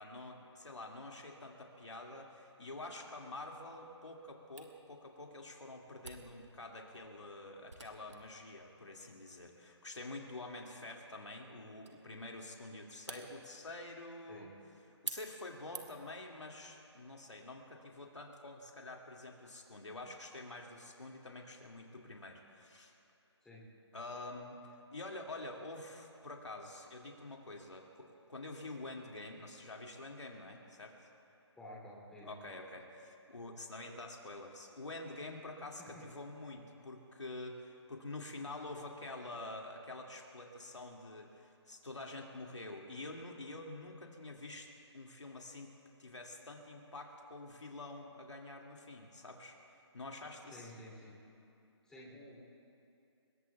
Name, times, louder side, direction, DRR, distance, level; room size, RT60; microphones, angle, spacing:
voice 1, 0.0-14.5 15.0-22.9 23.9-24.6 24.9-31.1 32.2-45.7 46.0-49.6 49.9-50.7, left 2 dB, 80° left, 1 dB, 2.3 m, -47 dB
Camera, 4.6-16.2, right 3 dB, 75° right, 2.0 m, -52 dB
voice 2, 31.5-32.5 35.8-36.1 50.5-51.2 51.8-52.4, left 1 dB, 5° left, -5 dB, 3.0 m, -52 dB
27.0 x 21.5 x 2.3 m, 2.8 s
figure-of-eight pair, 150°, 15 cm